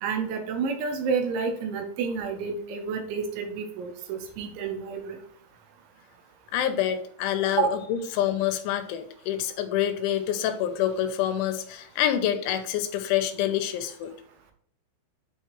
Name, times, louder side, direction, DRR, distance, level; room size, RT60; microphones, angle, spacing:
voice 1, 0.0-5.2 7.6-7.7, right 5 dB, 80° right, 5 dB, 3.2 m, -29 dB
voice 2, 6.5-14.1, left 11 dB, 85° left, 8 dB, 3.0 m, -27 dB
8.1 x 4.6 x 3.0 m, 0.63 s
omnidirectional pair, 5.5 m